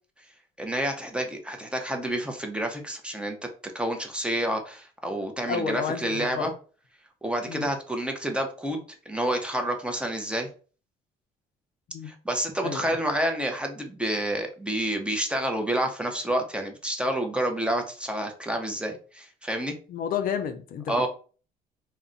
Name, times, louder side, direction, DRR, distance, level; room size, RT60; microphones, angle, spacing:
voice 1, 0.6-3.4 3.7-6.5 7.2-10.5 12.1-19.7 20.9-21.1, right 1 dB, 5° right, 0.6 m, -29 dB
voice 2, 5.4-6.6 7.5-7.7 11.9-12.1 12.6-13.0 19.9-21.1, left 7 dB, 60° left, 0.5 m, -31 dB
2.4 x 2.1 x 3.8 m
cardioid pair, 110°, 17 cm